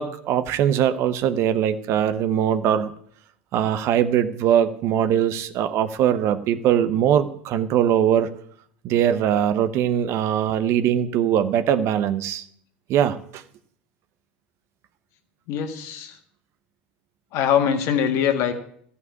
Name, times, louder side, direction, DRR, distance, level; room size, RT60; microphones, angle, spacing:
voice 1, 0.0-2.9 3.5-8.3 8.8-12.4 12.9-13.4, right 9 dB, 50° right, 12 dB, 0.9 m, -21 dB
voice 2, 15.5-16.1 17.3-18.5, left 8 dB, 55° left, 6 dB, 1.8 m, -22 dB
13.5 x 5.6 x 9.4 m, 0.65 s
hypercardioid pair, 90°, 6 cm